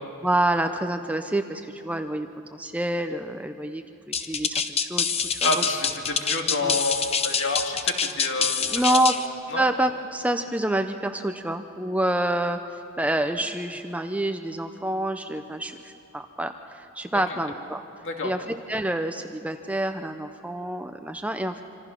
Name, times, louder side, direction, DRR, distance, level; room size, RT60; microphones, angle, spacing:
voice 1, 0.2-5.6 6.6-6.7 8.6-9.1 9.6-17.8 18.2-21.6, right 1 dB, 5° right, 7 dB, 0.6 m, -27 dB
sound 1, 4.1-9.3, left 6 dB, 30° left, 0.8 m, -25 dB
voice 2, 5.4-9.1 9.5-9.6 17.3-17.4 18.0-18.3, left 2 dB, 60° left, 2 dB, 2.3 m, -28 dB
26.5 x 26.0 x 5.9 m, 2.8 s
head